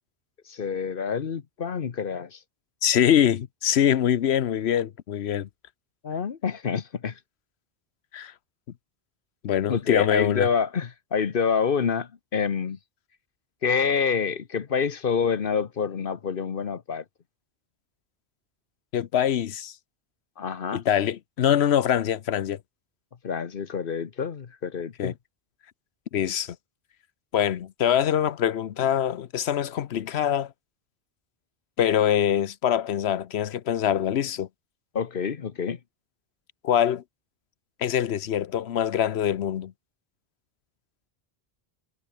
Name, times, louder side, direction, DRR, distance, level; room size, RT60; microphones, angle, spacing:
voice 1, 0.5-2.4 6.0-7.2 9.7-12.8 13.6-17.0 20.4-20.8 23.2-25.1 34.9-35.8, left 6 dB, 60° left, 1.1 m, -27 dB
voice 2, 2.8-5.5 8.1-8.3 9.4-10.5 18.9-19.7 20.7-22.6 25.0-25.1 26.1-26.6 27.3-30.5 31.8-34.5 36.6-37.0 37.8-39.7, left 10 dB, 90° left, 1.0 m, -24 dB
omnidirectional pair, 1.0 m